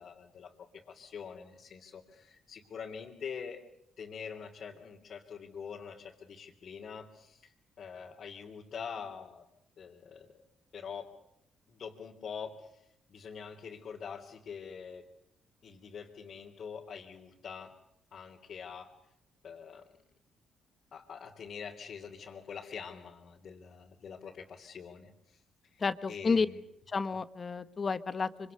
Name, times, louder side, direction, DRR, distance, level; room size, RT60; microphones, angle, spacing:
voice 1, 0.0-3.6 4.0-7.5 7.8-9.4 9.8-10.3 10.7-11.1 11.7-12.8 13.1-15.0 15.6-17.8 18.1-18.9 19.4-19.8 20.9-25.8 26.1-26.6, left 6 dB, 55° left, -2 dB, 3.3 m, -45 dB
voice 2, 25.8-26.5 26.9-28.5, left 4 dB, 35° left, 13 dB, 1.2 m, -31 dB
26.5 x 25.0 x 6.7 m, 0.81 s
cardioid pair, 90°, 0 cm